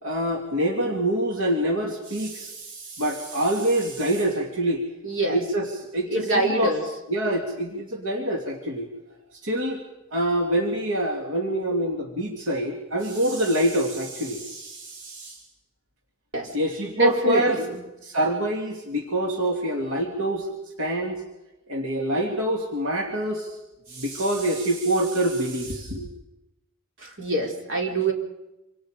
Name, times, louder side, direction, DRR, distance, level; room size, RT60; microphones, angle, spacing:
voice 1, 0.0-4.8 5.3-6.7 7.1-8.9 9.4-9.8 10.1-15.4 16.5-17.6 18.0-20.5 20.8-21.2 21.7-23.6 23.9-26.1, right 1 dB, 80° right, 1 dB, 2.8 m, -25 dB
voice 2, 5.0-5.4 6.1-6.8 16.3-16.5 16.9-17.8 27.0-28.1, right 1 dB, 60° right, 1 dB, 4.2 m, -25 dB
27.0 x 26.0 x 5.1 m, 0.96 s
head